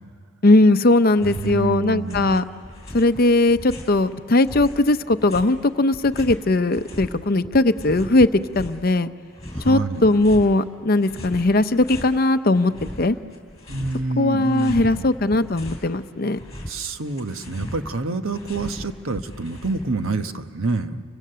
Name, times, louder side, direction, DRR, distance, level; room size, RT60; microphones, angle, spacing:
voice 1, 0.4-2.4 2.9-8.3 8.6-9.1 9.6-12.7 13.0-13.2 14.2-16.4, left 2 dB, 45° left, 11 dB, 0.7 m, -19 dB
sound 1, 1.1-1.7 1.9-4.0 4.4-7.1 7.4-8.9 9.3-10.5 11.0-12.2 12.6-14.1 14.4-15.9 16.2-20.1, left 1 dB, 20° left, 3.6 m, -37 dB
voice 2, 1.2-2.4 9.5-10.1 13.7-15.0 16.7-21.0, right 3 dB, 85° right, 8 dB, 1.2 m, -27 dB
30.0 x 24.5 x 6.8 m, 2.4 s
head